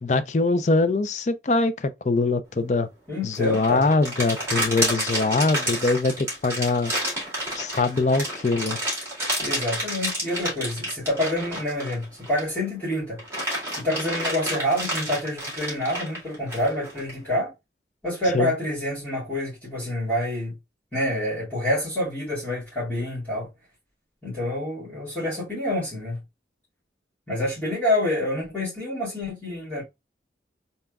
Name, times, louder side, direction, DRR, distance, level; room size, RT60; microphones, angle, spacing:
voice 1, 0.0-2.9 3.2-6.9 7.6-8.8 18.3-18.5, left 3 dB, 40° left, 0.4 m, -23 dB
voice 2, 3.1-3.9 9.4-13.2 13.8-17.5 18.0-20.6 20.9-23.5 24.2-26.2 27.3-29.8, left 1 dB, 10° left, 2.3 m, -27 dB
sound 1, 3.3-12.6 13.0-17.1, right 1 dB, 15° right, 2.2 m, -29 dB
4.1 x 3.4 x 2.3 m
head